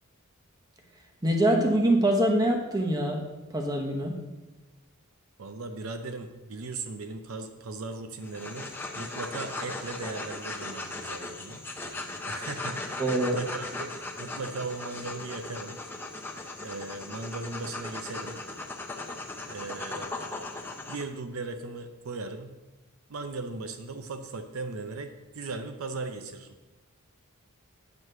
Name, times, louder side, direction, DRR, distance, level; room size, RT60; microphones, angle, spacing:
voice 1, 1.2-3.2 3.5-4.1 13.0-13.4, right 1 dB, 20° right, 1 dB, 1.0 m, -24 dB
voice 2, 5.4-8.7 8.9-11.6 12.2-13.9 14.2-15.8 16.6-18.4 19.5-20.2 20.9-22.5 23.1-26.6, right 3 dB, 75° right, 6 dB, 0.6 m, -38 dB
sound 1, 8.2-21.0, left 2 dB, 10° left, 0.6 m, -38 dB
9.2 x 3.2 x 6.6 m, 1.1 s
head